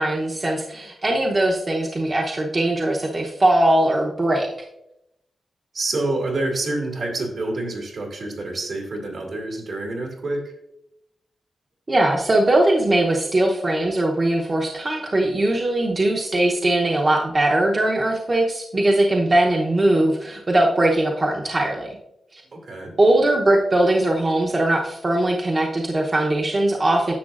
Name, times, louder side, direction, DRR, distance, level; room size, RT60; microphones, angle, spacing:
voice 1, 0.0-4.5 11.9-21.9 22.3-22.4 23.0-27.1, right 1 dB, 35° right, -1 dB, 0.8 m, -20 dB
voice 2, 5.7-10.5 22.5-22.9, right 2 dB, 70° right, 1 dB, 2.3 m, -27 dB
10.5 x 6.8 x 2.5 m, 0.84 s
wide cardioid pair, 110°, 0 cm